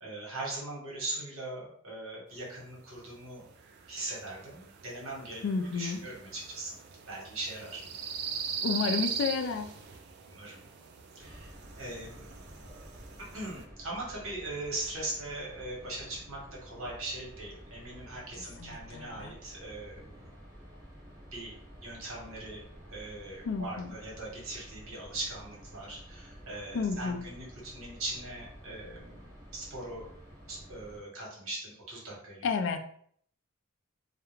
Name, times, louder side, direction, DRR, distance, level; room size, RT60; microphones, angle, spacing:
voice 1, 0.0-3.5 3.9-5.4 5.7-6.8 7.1-7.8 10.3-10.6 11.1-12.4 13.3-20.3 21.3-21.5 21.8-22.6 22.9-30.1 30.5-32.5, right 2 dB, 80° right, -3 dB, 1.1 m, -40 dB
sound 1, 2.8-13.6, right 6 dB, 50° right, 0.3 m, -40 dB
voice 2, 5.4-6.0 8.6-9.7 18.6-19.3 23.4-24.0 26.7-27.3 32.4-32.8, left 5 dB, 60° left, 6 dB, 0.3 m, -31 dB
sound 2, 11.2-31.0, equal, 15° right, 0.7 m, -51 dB
2.3 x 2.1 x 3.0 m, 0.62 s
head